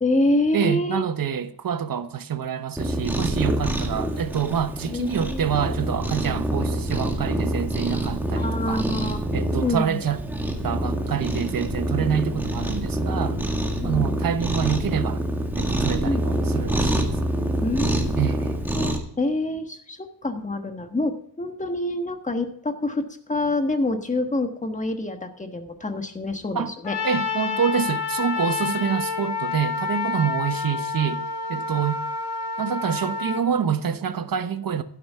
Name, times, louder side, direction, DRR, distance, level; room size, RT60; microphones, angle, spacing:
voice 1, 0.0-1.0 4.8-5.5 8.3-10.0 12.0-12.4 13.8-14.1 16.0-16.4 17.6-18.2 18.7-27.0, left 2 dB, 20° left, 1.4 m, -27 dB
voice 2, 0.5-8.8 9.3-10.2 10.6-13.4 13.8-15.2 15.5-17.1 18.2-18.6 26.5-26.7 27.0-31.2 31.5-32.0 32.6-34.8, right 8 dB, 55° right, 1.0 m, -26 dB
Cat, 2.8-19.0, right 1 dB, 5° right, 1.8 m, -26 dB
Trumpet, 26.8-33.4, left 5 dB, 75° left, 2.2 m, -28 dB
12.0 x 11.5 x 3.6 m
wide cardioid pair, 145°, 41 cm